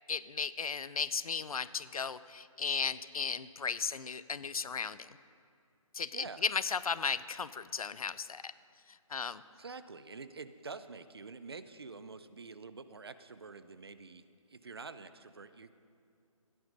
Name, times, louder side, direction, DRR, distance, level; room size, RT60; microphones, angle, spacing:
voice 1, 0.1-5.2 5.9-8.5 8.9-9.4, left 5 dB, 90° left, 16 dB, 0.6 m, -35 dB
voice 2, 6.1-6.4 9.1-9.2 9.6-15.7, right 4 dB, 45° right, 13 dB, 0.5 m, -47 dB
17.0 x 9.6 x 5.3 m, 2.5 s
hypercardioid pair, 175°, 18 cm